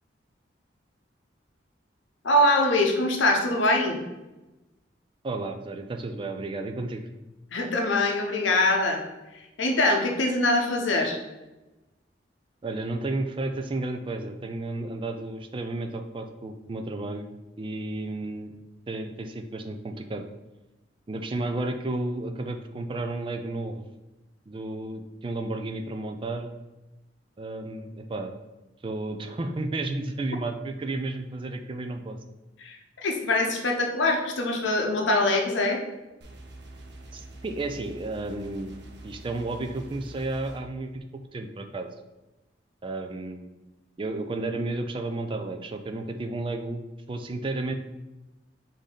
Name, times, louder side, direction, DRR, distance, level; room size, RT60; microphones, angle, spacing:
voice 1, 2.2-4.0 7.5-9.0 9.3-11.2 32.6-35.8, left 2 dB, 85° left, 2 dB, 0.7 m, -23 dB
voice 2, 5.2-7.0 12.6-18.5 18.9-20.2 21.1-23.9 24.5-26.5 27.4-28.3 28.8-32.2 37.1-38.7 39.0-41.9 42.8-43.5 44.0-46.8 47.1-47.7, right 2 dB, 25° right, 6 dB, 0.3 m, -32 dB
sound 1, 36.2-40.6, right 2 dB, 60° right, 0.7 m, -45 dB
5.2 x 2.7 x 3.7 m, 1.0 s
head